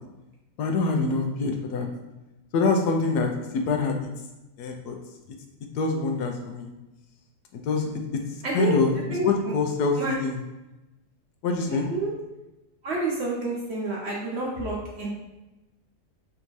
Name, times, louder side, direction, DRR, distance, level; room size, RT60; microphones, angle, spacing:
voice 1, 0.6-1.9 2.5-3.3 3.5-4.1 4.6-4.9 5.7-6.7 7.5-8.0 8.5-8.9 9.2-10.4 11.4-11.9, left 3 dB, 85° left, 3 dB, 1.2 m, -25 dB
voice 2, 9.1-9.5 10.0-10.2 11.7-12.1 12.8-15.1, right 2 dB, 50° right, -3 dB, 1.0 m, -29 dB
3.5 x 2.7 x 4.6 m, 1.0 s
omnidirectional pair, 1.7 m